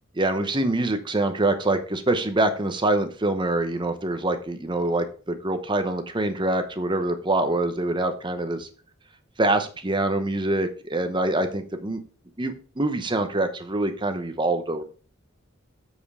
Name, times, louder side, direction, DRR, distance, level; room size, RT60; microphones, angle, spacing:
voice 1, 0.2-8.7 9.4-12.0 12.4-14.8, right 2 dB, 25° right, 8 dB, 0.9 m, -25 dB
7.9 x 5.1 x 4.8 m, 0.39 s
head